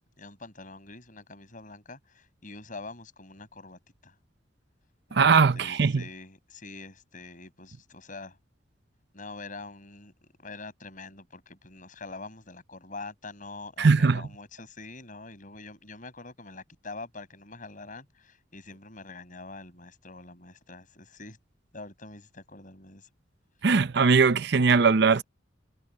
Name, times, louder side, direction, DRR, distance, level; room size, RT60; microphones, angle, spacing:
voice 1, 0.2-4.1 5.1-8.4 9.1-10.1 10.4-21.4 21.7-23.1, left 3 dB, 45° left, 7.9 m, -45 dB
voice 2, 5.1-6.0 13.8-14.2 23.6-25.2, right 5 dB, 60° right, 0.6 m, -20 dB
head